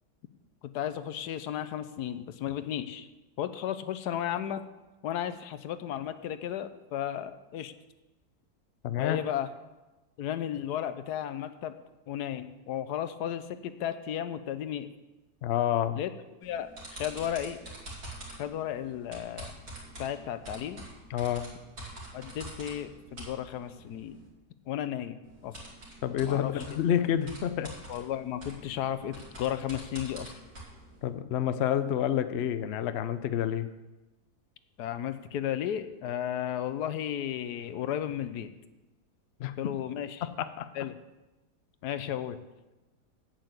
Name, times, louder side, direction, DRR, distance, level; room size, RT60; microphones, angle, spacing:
voice 1, 0.7-3.1 3.4-4.6 5.0-7.7 9.0-9.5 10.2-11.7 12.1-14.9 15.9-16.1 16.4-17.6 18.4-19.5 20.0-20.8 22.1-24.2 24.7-25.5 26.2-26.6 27.9-30.3 34.8-38.5 39.6-40.3 40.7-41.0 41.8-42.4, left 10 dB, 80° left, 11 dB, 1.3 m, -34 dB
voice 2, 8.8-9.2 15.4-16.0 21.1-21.5 26.0-27.7 31.0-33.7 39.4-39.5 40.4-40.7, left 10 dB, 60° left, 11 dB, 0.7 m, -28 dB
sound 1, 16.4-24.3 25.2-31.1, right 1 dB, 60° right, 3.0 m, -46 dB
8.4 x 8.0 x 8.0 m, 1.1 s
omnidirectional pair, 1.7 m